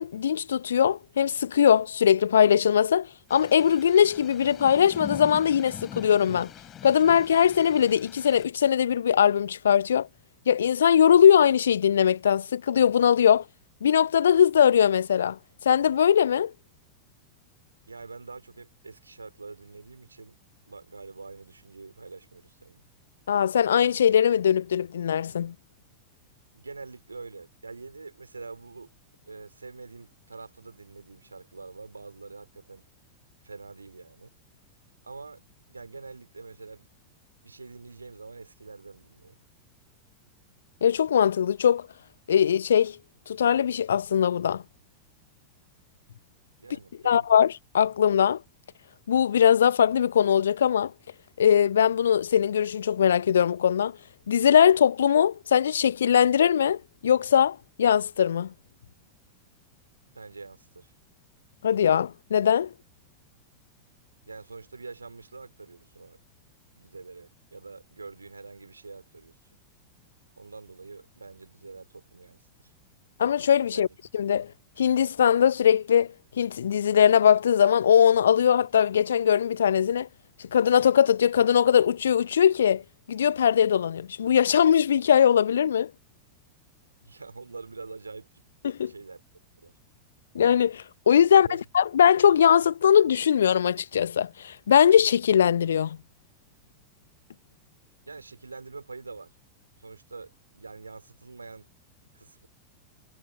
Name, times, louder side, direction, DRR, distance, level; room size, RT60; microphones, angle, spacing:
voice 1, 0.0-6.5 6.8-10.1 10.5-13.4 13.8-16.5 23.3-25.5 40.8-41.9 42.3-43.0 43.3-44.6 47.0-48.4 49.1-50.9 51.4-53.9 54.3-58.5 61.6-62.7 73.2-73.9 74.1-74.5 74.8-76.1 76.4-80.1 80.5-82.8 83.1-85.9 88.6-88.9 90.3-96.0, left 8 dB, 65° left, 1.1 m, -21 dB
sound 1, 3.3-8.4, left 10 dB, 30° left, 4.0 m, -43 dB
voice 2, 17.9-20.4 20.7-22.9 26.5-28.9 29.3-32.9 33.4-34.3 35.0-35.4 35.7-36.9 37.4-39.4 46.6-47.3 60.1-60.9 64.3-66.2 66.8-69.4 70.4-72.7 73.7-73.8 87.0-88.4 88.9-89.2 89.6-89.7 91.3-91.6 98.0-99.3 99.8-101.7 102.1-102.5, right 4 dB, 80° right, 5.4 m, -45 dB
figure-of-eight pair, 90°, 0 cm